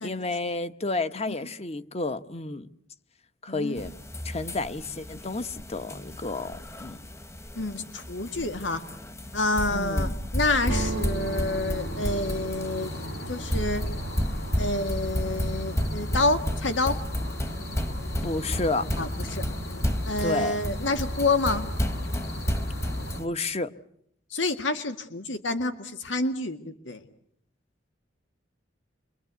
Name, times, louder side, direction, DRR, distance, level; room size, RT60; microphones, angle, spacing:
voice 1, 0.0-2.7 3.4-4.0 4.2-7.0 9.7-10.2 18.2-18.9 20.2-20.6 23.2-23.7, left 3 dB, 35° left, 11 dB, 1.2 m, -31 dB
voice 2, 3.5-3.8 7.6-8.8 9.3-12.9 13.3-13.8 14.6-17.0 19.0-19.4 20.1-21.7 24.3-26.6 26.9-27.0, left 2 dB, 90° left, 8 dB, 2.0 m, -28 dB
sound 1, 3.8-23.3, equal, 15° left, 1.3 m, -32 dB
sound 2, 10.6-23.2, equal, 70° left, 3.7 m, -37 dB
sound 3, 10.7-14.5 15.0-15.6 15.9-16.7, right 4 dB, 80° right, 1.0 m, -39 dB
28.0 x 23.5 x 8.2 m, 0.71 s
head